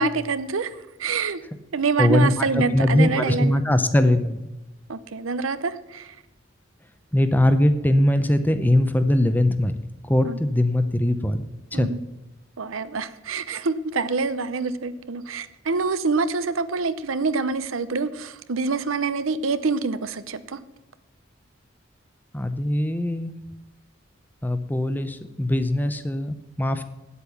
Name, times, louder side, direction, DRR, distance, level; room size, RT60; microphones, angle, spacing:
voice 1, 0.0-1.4 1.7-3.6 4.9-6.2 10.2-10.4 11.7-12.0 12.6-20.6, right 4 dB, 90° right, 13 dB, 0.7 m, -26 dB
voice 2, 2.0-4.4 7.1-9.8 10.0-11.9 22.3-23.4 24.4-26.8, left 1 dB, 10° left, 10 dB, 0.6 m, -21 dB
9.7 x 8.3 x 7.0 m, 1.0 s
head